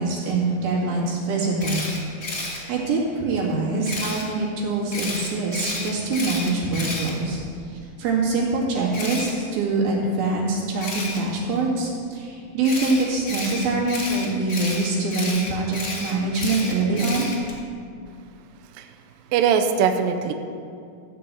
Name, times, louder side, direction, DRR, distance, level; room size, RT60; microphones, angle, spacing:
voice 1, 0.0-1.9 2.7-17.3, right 3 dB, 70° right, -4 dB, 3.8 m, -24 dB
Camera, 1.6-2.6 3.8-4.2 4.9-7.7 8.9-9.3 10.8-11.2 12.6-17.6, left 2 dB, 90° left, 0.6 m, -31 dB
voice 2, 19.3-20.3, right 7 dB, 85° right, 6 dB, 2.0 m, -20 dB
13.5 x 5.4 x 7.6 m, 2.4 s
omnidirectional pair, 4.6 m